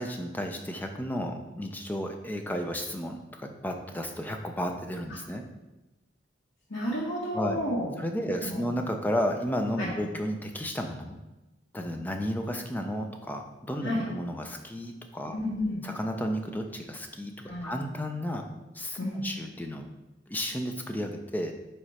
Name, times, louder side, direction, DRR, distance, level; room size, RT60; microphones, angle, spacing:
voice 1, 0.0-5.4 7.3-7.6 8.0-11.2 11.7-15.4 15.8-17.3 17.6-18.5 18.7-19.9 20.3-21.5, equal, 10° left, 4 dB, 0.5 m, -33 dB
voice 2, 6.7-7.9 8.4-8.6 9.8-9.9 13.8-14.0 15.3-15.8 17.4-17.7 19.0-19.2, left 1 dB, 85° left, -8 dB, 1.5 m, -31 dB
5.0 x 4.4 x 4.2 m, 1.1 s
head